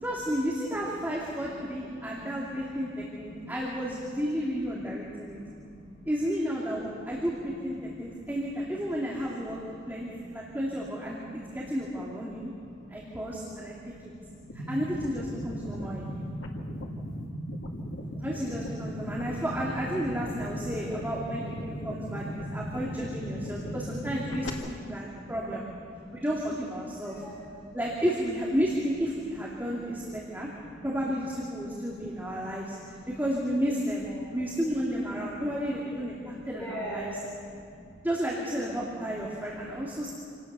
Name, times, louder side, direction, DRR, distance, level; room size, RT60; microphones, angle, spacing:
voice 1, 0.0-5.4 6.1-9.6 9.9-12.5 12.9-13.7 14.5-16.3 18.2-25.6 26.1-27.2 27.7-30.5 30.8-32.8 33.1-34.1 34.3-37.1 38.0-40.1, equal, 10° right, -5 dB, 2.5 m, -32 dB
voice 2, 4.9-6.0 7.9-8.3 9.8-9.9 10.2-10.4 11.1-11.7 12.5-14.6 15.6-17.0 19.0-19.3 20.5-20.7 21.6-22.7 23.6-23.7 24.8-25.4 25.9-26.2 27.0-27.8 30.2-30.9 31.8-32.0 32.4-33.0 33.6-33.7 34.1-34.3 36.2-36.3 36.6-37.9 38.9-39.0 39.8-40.1, equal, 15° left, -7 dB, 3.8 m, -45 dB
sound 1, 14.5-24.5, equal, 85° left, 2.2 m, -37 dB
27.0 x 18.0 x 6.9 m, 2.3 s
head